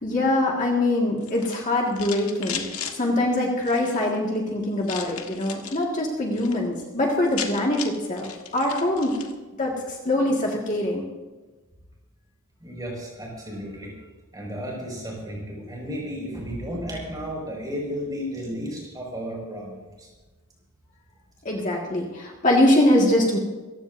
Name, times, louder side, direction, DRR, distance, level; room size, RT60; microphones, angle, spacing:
voice 1, 0.0-2.7 2.9-9.2 9.6-11.0 21.4-23.4, left 1 dB, 35° left, -2 dB, 1.8 m, -23 dB
sound 1, 1.2-3.0 3.6-4.1 4.8-5.8 6.2-6.6 6.9-7.0 7.1-9.3, left 8 dB, 80° left, 1.6 m, -36 dB
voice 2, 12.6-13.9 14.3-20.1, equal, 15° right, -2 dB, 5.6 m, -33 dB
25.5 x 15.5 x 2.7 m, 1.3 s
head